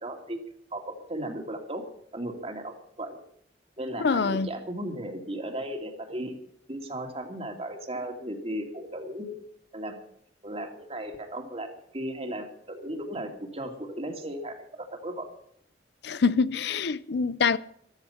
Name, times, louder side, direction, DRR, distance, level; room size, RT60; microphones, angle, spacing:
voice 1, 0.0-0.4 0.7-1.9 2.1-3.2 3.8-6.3 6.7-9.3 9.7-10.0 10.4-15.3, right 1 dB, 35° right, 2.5 m, -36 dB
voice 2, 4.0-4.5 16.0-17.6, left 5 dB, 65° left, 0.5 m, -25 dB
14.5 x 13.5 x 5.7 m
head